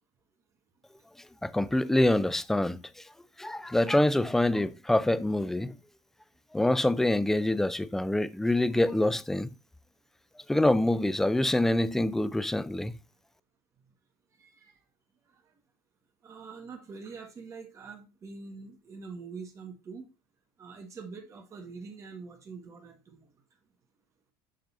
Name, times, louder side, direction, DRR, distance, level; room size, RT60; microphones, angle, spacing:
voice 1, 1.4-2.8 3.4-5.7 6.5-9.5 10.5-13.0, left 1 dB, 5° left, 0.4 m, -25 dB
voice 2, 14.3-14.8 15.2-15.6 16.2-20.1 20.6-23.4, right 4 dB, 30° right, 1.5 m, -45 dB
11.5 x 3.9 x 2.6 m
cardioid pair, 140°, 10 cm